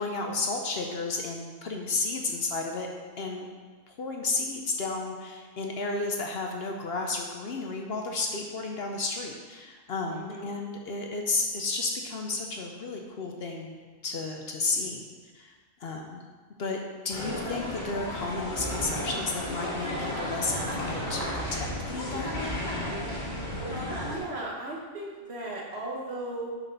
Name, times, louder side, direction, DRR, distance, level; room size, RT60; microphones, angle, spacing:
voice 1, 0.0-2.9 3.2-3.5 3.9-15.0 15.3-15.5 15.8-16.2 16.6-16.8 17.0-22.5, left 3 dB, 60° left, 2 dB, 0.8 m, -32 dB
voice 2, 10.1-10.5 24.0-26.5, right 2 dB, 55° right, -2 dB, 1.4 m, -36 dB
sound 1, 17.1-24.2, left 1 dB, 40° left, 1.7 m, -33 dB
7.1 x 4.3 x 5.3 m, 1.5 s
omnidirectional pair, 1.3 m